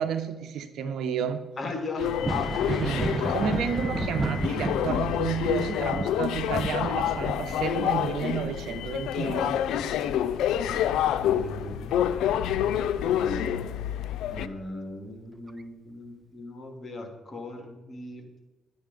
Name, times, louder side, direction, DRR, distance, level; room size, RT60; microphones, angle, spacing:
voice 1, 0.0-1.5 2.7-9.6, right 7 dB, 75° right, 9 dB, 1.1 m, -31 dB
voice 2, 1.6-2.8 11.2-12.0 12.2-12.4 12.7-13.7 14.3-18.3, left 2 dB, 40° left, 4 dB, 2.4 m, -38 dB
sound 1, 2.0-14.5, left 10 dB, 85° left, 0.5 m, -28 dB
Thunder, 2.1-11.4 11.8-13.0 14.6-14.7 15.5-15.6, right 3 dB, 20° right, 0.6 m, -34 dB
11.0 x 8.7 x 5.3 m, 1.1 s
cardioid pair, 90°, 0 cm